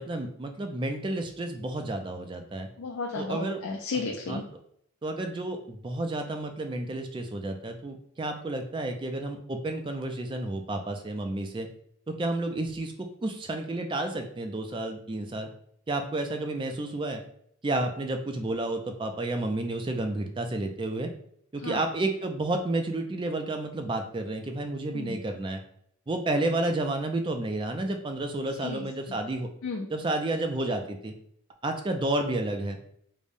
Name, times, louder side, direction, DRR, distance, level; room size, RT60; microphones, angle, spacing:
voice 1, 0.0-2.7 3.2-3.6 4.3-4.4 5.0-11.7 12.1-15.5 15.9-17.2 17.6-21.1 21.5-25.6 26.1-29.5 29.9-31.1 31.6-32.8, right 2 dB, 25° right, 5 dB, 0.3 m, -31 dB
voice 2, 2.8-4.4 21.6-21.8 24.9-25.2 28.6-28.9 29.6-29.9, left 3 dB, 90° left, 1 dB, 0.4 m, -33 dB
4.9 x 2.1 x 2.6 m, 0.68 s
head